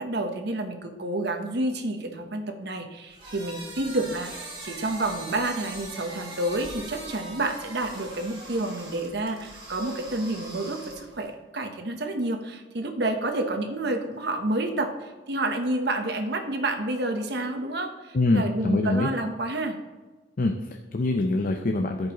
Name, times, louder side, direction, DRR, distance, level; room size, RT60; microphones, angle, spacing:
voice 1, 0.0-19.8, right 2 dB, 65° right, 5 dB, 1.0 m, -29 dB
sound 1, 3.1-11.3, right 2 dB, 30° right, 2.2 m, -41 dB
voice 2, 18.1-19.1 20.4-22.1, left 2 dB, 50° left, 4 dB, 0.5 m, -25 dB
14.0 x 5.3 x 3.0 m, 1.3 s
head